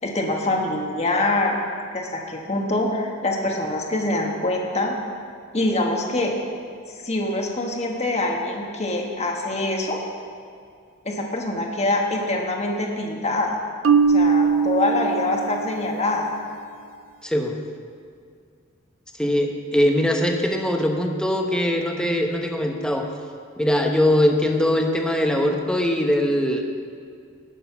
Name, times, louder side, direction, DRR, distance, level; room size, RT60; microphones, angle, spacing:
voice 1, 0.0-1.6 1.9-5.0 5.5-6.3 7.0-10.0 11.0-13.6 14.1-16.3, left 2 dB, 35° left, 0 dB, 1.5 m, -24 dB
Marimba xylophone, 13.8-15.9, right 5 dB, 80° right, 0.5 m, -20 dB
voice 2, 17.2-17.6 19.2-23.1 23.6-26.6, left 1 dB, 5° left, 2 dB, 1.1 m, -21 dB
19.5 x 6.6 x 6.0 m, 2.2 s
head